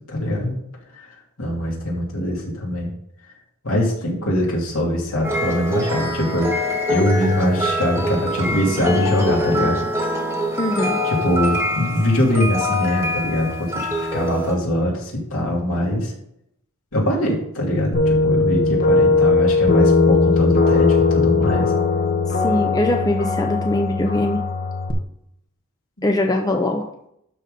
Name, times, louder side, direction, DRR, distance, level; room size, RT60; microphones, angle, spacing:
voice 1, 0.1-0.6 1.0-1.1 1.4-2.9 3.6-6.5 6.9-9.8 11.0-16.1 16.9-21.7, left 1 dB, 65° left, -2 dB, 2.9 m, -22 dB
sound 1, 5.2-14.6, left 1 dB, 10° right, 1.3 m, -24 dB
voice 2, 10.6-11.0 22.4-24.4 26.0-26.9, left 1 dB, 15° left, 3 dB, 0.6 m, -21 dB
sound 2, 17.9-24.9, left 3 dB, 40° left, 1.2 m, -18 dB
12.0 x 4.0 x 5.2 m, 0.75 s
head